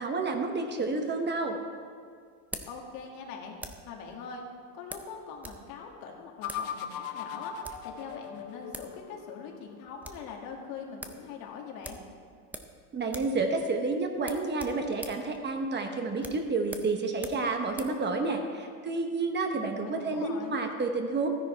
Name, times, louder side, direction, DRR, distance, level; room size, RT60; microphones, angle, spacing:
voice 1, 0.0-1.6 12.9-21.3, right 3 dB, 25° right, 4 dB, 1.0 m, -30 dB
sound 1, 1.0-4.0 4.9-5.6 5.9-6.0 6.4-6.7 7.4-7.9 8.5-8.6 8.7-9.0 9.3-9.4 9.7-10.3 10.6-10.7 11.0-11.2 11.8-12.8 13.1-13.4 13.7-13.8 14.2-18.0, right 1 dB, 5° right, 0.3 m, -44 dB
voice 2, 2.7-4.4 4.7-12.0 19.5-20.5, left 5 dB, 80° left, 1 dB, 2.1 m, -43 dB
sound 2, 6.4-9.3, left 7 dB, 45° left, 1.0 m, -38 dB
13.0 x 10.0 x 4.5 m, 2.1 s
supercardioid pair, 130°, 46 cm